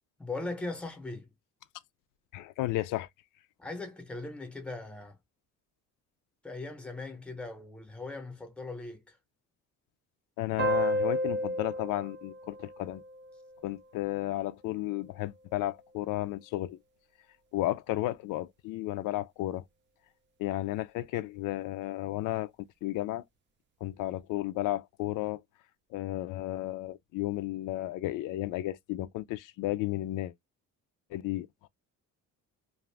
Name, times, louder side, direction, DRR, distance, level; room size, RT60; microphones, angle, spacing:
voice 1, 0.2-1.3 3.6-5.2 6.4-9.2, left 3 dB, 5° left, 0.7 m, -39 dB
voice 2, 2.3-3.1 10.4-13.0 13.6-16.8 17.5-19.6 20.4-22.5 22.8-23.2 23.8-25.4 25.9-30.3 31.1-31.7, left 16 dB, 90° left, 0.5 m, -33 dB
sound 1, 10.6-13.7, equal, 35° right, 0.5 m, -32 dB
2.6 x 2.4 x 3.2 m
cardioid pair, 180°, 31 cm